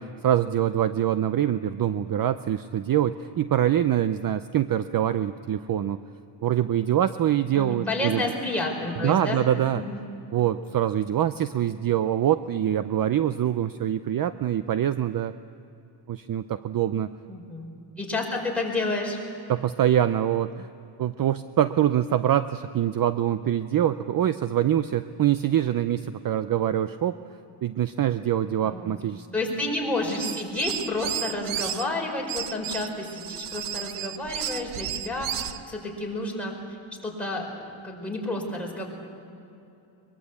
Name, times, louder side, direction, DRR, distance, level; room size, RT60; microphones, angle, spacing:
voice 1, 0.0-6.0 6.4-8.2 9.0-9.8 10.3-15.3 16.1-17.1 19.5-20.7 21.0-27.2 27.6-29.3, right 11 dB, 45° right, 12 dB, 0.6 m, -24 dB
voice 2, 7.5-9.4 9.7-10.0 17.3-17.7 18.0-19.2 28.6-28.9 29.3-38.9, left 2 dB, 5° left, -2 dB, 4.9 m, -30 dB
sound 1, 30.0-31.8 32.3-35.6, right 10 dB, 80° right, 1.1 m, -33 dB
22.5 x 22.5 x 8.2 m, 2.7 s
wide cardioid pair, 155°, 50 cm